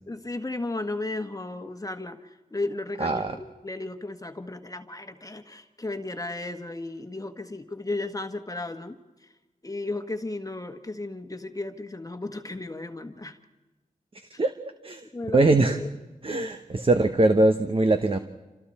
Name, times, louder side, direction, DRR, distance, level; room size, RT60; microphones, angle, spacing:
voice 1, 0.1-9.3 9.6-13.4 15.1-15.9, left 2 dB, 25° left, 6 dB, 1.4 m, -34 dB
voice 2, 3.0-3.4 14.4-15.8 16.2-18.2, right 2 dB, 40° right, 7 dB, 1.1 m, -22 dB
27.5 x 27.0 x 4.3 m, 1.1 s
cardioid pair, 65°, 14 cm